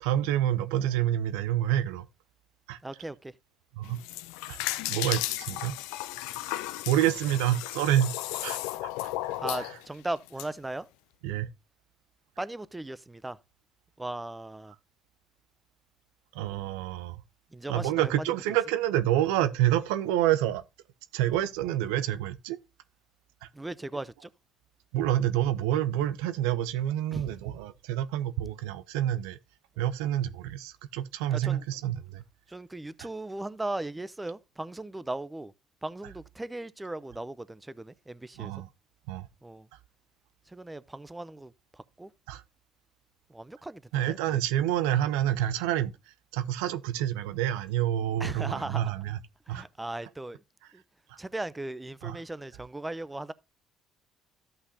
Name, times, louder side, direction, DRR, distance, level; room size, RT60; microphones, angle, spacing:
voice 1, 0.0-2.0 2.7-2.8 3.8-4.0 4.5-4.6 4.9-5.8 6.9-8.2 8.4-8.6 9.3-9.7 11.2-11.5 16.3-17.2 17.7-20.6 21.1-22.6 24.9-29.4 29.8-32.2 38.4-38.7 39.1-39.3 42.3-42.4 43.9-45.9 46.3-49.2 49.5-49.6 52.0-52.2, right 12 dB, 85° right, 0.4 m, -28 dB
voice 2, 2.8-3.3 9.4-10.9 12.4-13.4 14.0-14.7 17.5-18.3 23.5-24.3 27.1-27.4 31.3-31.6 32.5-35.5 35.8-38.5 39.4-39.7 40.5-42.1 43.3-44.4 48.2-48.9 49.5-50.4 50.7-50.8 51.2-53.3, right 2 dB, 15° right, 0.6 m, -37 dB
sound 1, 3.8-10.5, left 16 dB, 85° left, 0.4 m, -34 dB
13.0 x 5.6 x 2.7 m
supercardioid pair, 70°, 0 cm